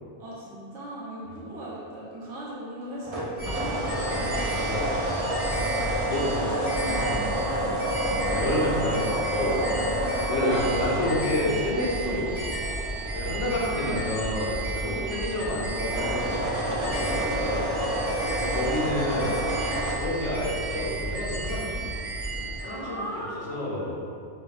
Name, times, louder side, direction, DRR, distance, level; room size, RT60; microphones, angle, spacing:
voice 1, 0.2-4.6 5.5-5.7 6.1-8.2 10.4-11.3 12.0-12.2 13.6-14.1 14.4-15.1 18.2-18.9 22.6-23.7, equal, 85° right, -8 dB, 1.1 m, -38 dB
sound 1, 3.0-12.3 15.8-19.9, equal, 70° right, 0.3 m, -29 dB
sound 2, 3.4-22.6, right 2 dB, 55° right, 0.9 m, -33 dB
sound 3, 4.3-9.2 10.5-18.9 19.6-22.8, equal, 65° left, 1.3 m, -45 dB
voice 2, 4.6-5.1 6.0-6.3 7.0-7.3 8.3-9.6 10.3-12.5 13.1-17.7 18.4-19.4 20.0-21.8 22.6-24.0, left 1 dB, 90° left, -5 dB, 1.0 m, -29 dB
3.4 x 2.1 x 2.3 m, 2.5 s
omnidirectional pair, 1.2 m